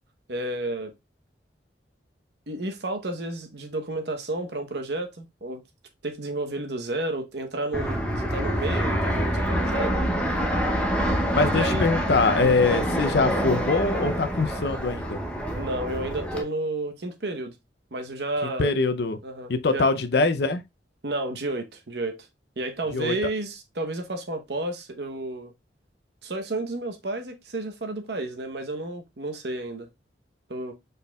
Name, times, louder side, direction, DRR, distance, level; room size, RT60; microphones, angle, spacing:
voice 1, 0.3-0.9 2.5-5.6 6.0-10.0 11.5-11.9 12.4-12.6 15.5-17.5 17.9-18.7 19.2-19.9 21.0-22.3 22.6-25.5 26.2-29.9 30.5-30.7, right 2 dB, 65° right, 1.0 m, -31 dB
Fixed-wing aircraft airplane, 7.7-16.4, equal, 5° left, 0.7 m, -26 dB
voice 2, 11.3-15.2 18.6-19.2 19.5-20.6 22.9-23.2, left 3 dB, 60° left, 0.5 m, -23 dB
5.2 x 4.3 x 2.3 m
head